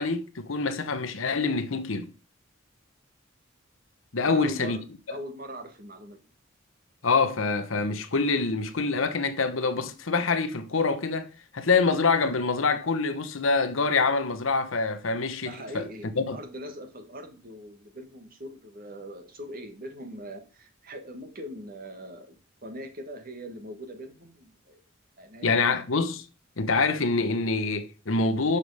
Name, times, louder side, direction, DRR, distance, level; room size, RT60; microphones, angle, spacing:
voice 1, 0.0-2.1 4.1-4.8 7.0-15.8 16.2-16.4 25.4-26.2 26.6-28.6, left 4 dB, 80° left, 1.0 m, -25 dB
voice 2, 4.2-4.8 5.1-6.2 15.4-24.8 25.2-25.7, equal, 45° right, 1.5 m, -41 dB
6.9 x 5.7 x 4.8 m
head